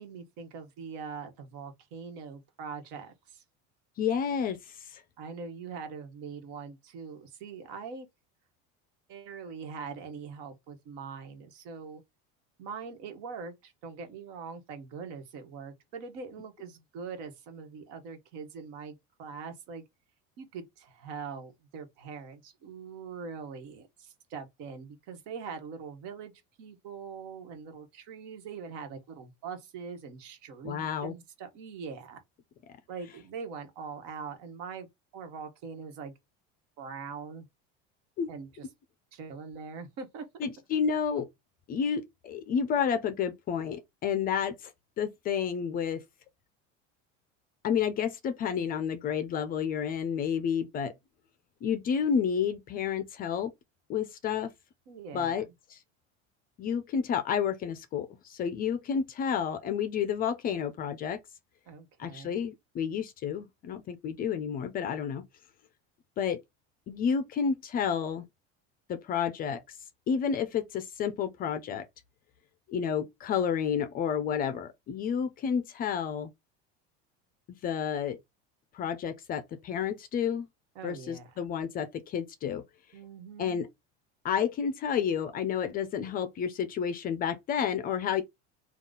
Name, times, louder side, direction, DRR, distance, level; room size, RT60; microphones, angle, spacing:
voice 1, 0.0-3.4 5.2-8.1 9.1-12.0 12.6-19.8 20.4-26.3 26.6-32.2 32.9-36.1 36.8-37.5 38.3-38.7 39.1-40.3 54.9-55.5 61.7-62.4 80.7-81.3 82.9-83.6, right 5 dB, 70° right, 1.3 m, -42 dB
voice 2, 4.0-5.0 30.6-31.1 38.2-38.3 40.4-41.3 41.7-44.7 45.0-46.0 47.6-50.9 51.6-53.5 53.9-54.5 55.1-55.8 56.6-61.2 62.0-65.2 66.2-66.4 66.9-68.2 68.9-69.8 70.1-71.8 72.7-76.3 77.6-78.2 78.7-80.5 80.8-82.6 83.4-83.7 84.2-88.2, left 7 dB, 30° left, 0.4 m, -30 dB
3.8 x 2.4 x 3.8 m
cardioid pair, 160°, 30 cm